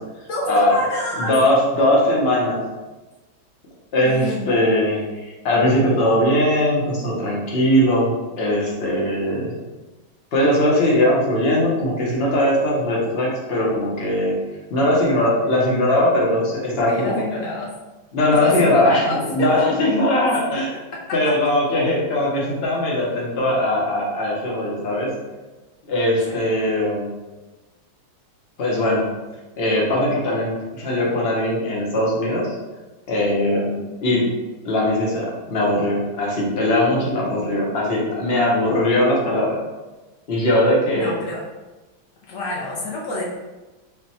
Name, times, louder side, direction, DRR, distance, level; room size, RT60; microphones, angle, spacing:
voice 1, 0.3-1.4 4.0-4.5 16.9-17.7 18.2-19.7 26.3-26.4 33.5-33.8 40.9-41.4 42.3-43.2, left 2 dB, 90° left, -4 dB, 0.7 m, -27 dB
voice 2, 1.2-2.6 3.9-9.5 10.3-14.4 14.7-17.2 18.1-20.7 21.1-25.1 25.9-27.1 28.6-29.1 29.6-32.5 33.1-33.7 34.0-34.2 34.6-39.6 40.3-41.1, left 1 dB, 50° left, -4 dB, 0.7 m, -20 dB
3.8 x 2.2 x 4.1 m, 1.1 s
omnidirectional pair, 2.2 m